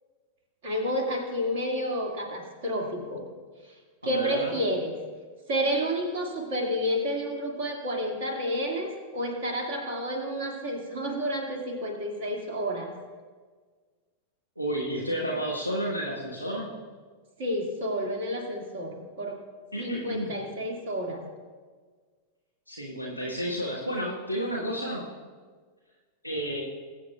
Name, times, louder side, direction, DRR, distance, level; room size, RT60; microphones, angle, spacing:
voice 1, 0.6-3.2 3.6-3.7 4.0-5.0 5.5-12.9 17.4-19.4 19.8-21.2, equal, 55° right, 2 dB, 2.1 m, -30 dB
voice 2, 4.0-4.5 14.6-16.7 19.7-20.4 22.7-25.1 26.2-26.6, right 1 dB, 90° right, -3 dB, 1.1 m, -31 dB
22.0 x 8.0 x 2.3 m, 1.5 s
figure-of-eight pair, 90°, 0 cm